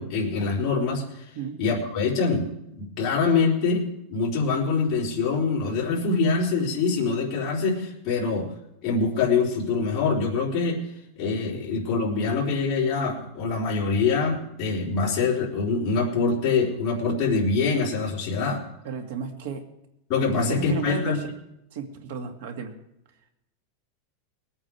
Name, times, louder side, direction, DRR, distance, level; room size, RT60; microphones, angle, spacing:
voice 1, 0.0-1.3 1.6-2.5 2.7-3.8 4.1-8.5 8.8-10.8 11.2-18.6 20.1-21.2, left 4 dB, 30° left, -5 dB, 3.9 m, -24 dB
voice 2, 18.8-19.7 20.4-21.3 21.7-22.8, right 5 dB, 60° right, 5 dB, 2.2 m, -34 dB
20.5 x 9.0 x 4.8 m, 0.82 s
supercardioid pair, 170°, 0 cm